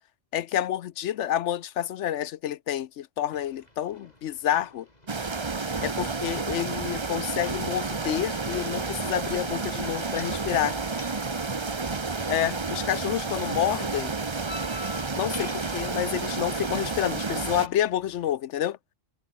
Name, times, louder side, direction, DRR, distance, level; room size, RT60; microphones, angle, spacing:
voice 1, 0.3-4.9 5.8-10.8 12.3-14.1 15.1-18.8, left 11 dB, 70° left, 0.9 m, -29 dB
sound 1, 3.3-18.3, left 1 dB, 30° left, 6.0 m, -49 dB
sound 2, 5.1-17.7, right 4 dB, 25° right, 0.9 m, -31 dB
omnidirectional pair, 1.3 m